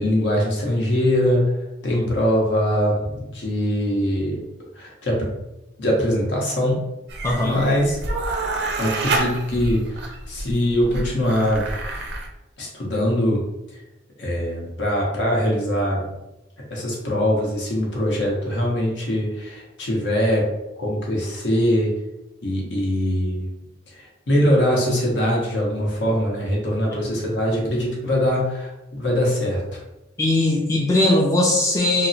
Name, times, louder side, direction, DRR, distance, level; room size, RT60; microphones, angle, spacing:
voice 1, 0.0-1.5 1.8-4.4 4.8-5.3 5.8-6.8 7.4-8.0 8.8-11.7 12.6-13.4 14.2-16.0 16.7-20.5 20.8-21.9 22.4-23.5 23.9-29.6, equal, 70° left, -2 dB, 0.8 m, -22 dB
sound 1, 7.1-12.3, right 3 dB, 60° right, 0.4 m, -28 dB
voice 2, 7.2-7.6 30.2-32.1, left 2 dB, 15° left, -3 dB, 0.3 m, -19 dB
2.9 x 2.0 x 2.6 m, 0.92 s
head